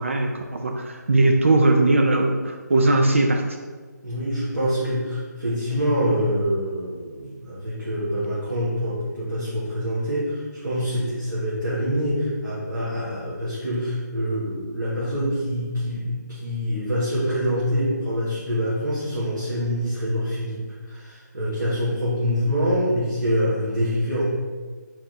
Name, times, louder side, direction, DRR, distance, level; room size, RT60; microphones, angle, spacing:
voice 1, 0.0-3.4, right 2 dB, 45° right, 3 dB, 0.4 m, -19 dB
voice 2, 4.0-24.3, equal, 85° right, -9 dB, 1.2 m, -25 dB
3.4 x 3.2 x 3.8 m, 1.4 s
figure-of-eight pair, 155°, 10 cm